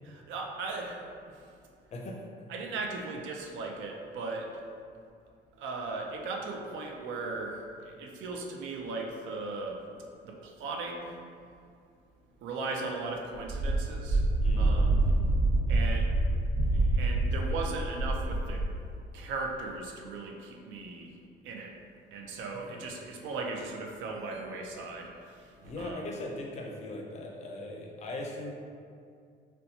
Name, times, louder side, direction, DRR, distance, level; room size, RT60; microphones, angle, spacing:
voice 1, 0.1-1.5 2.5-4.6 5.6-9.8 10.2-11.2 12.4-14.3 14.6-15.1 15.7-16.1 16.7-18.7 19.1-21.2 21.4-21.8 22.1-26.0, right 3 dB, 90° right, 1 dB, 0.5 m, -38 dB
voice 2, 1.9-2.2 14.4-14.8 15.0-15.2 22.7-22.8 25.6-28.5, left 2 dB, 35° left, 0 dB, 0.4 m, -39 dB
Wind, 13.4-18.8, right 2 dB, 70° right, 1.3 m, -26 dB
4.1 x 2.2 x 2.7 m, 2.3 s
cardioid pair, 170°, 19 cm